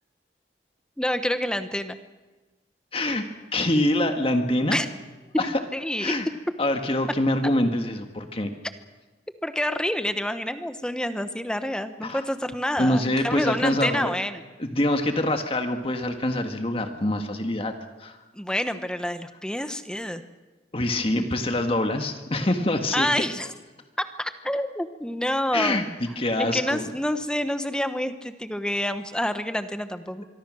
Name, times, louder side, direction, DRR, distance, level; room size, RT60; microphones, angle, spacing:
voice 1, 1.0-2.0 4.7-4.9 5.3-6.1 9.4-14.4 18.3-20.2 22.9-23.5 24.2-25.9 26.5-30.3, left 1 dB, 5° left, 9 dB, 1.1 m, -28 dB
voice 2, 2.9-3.3 3.5-4.8 5.4-5.5 6.0-6.3 6.6-8.5 12.0-12.2 12.8-14.1 14.6-17.7 18.0-18.2 20.7-23.2 25.5-25.8 26.2-26.8, left 1 dB, 35° left, 6 dB, 1.6 m, -25 dB
25.0 x 23.5 x 6.4 m, 1.2 s
head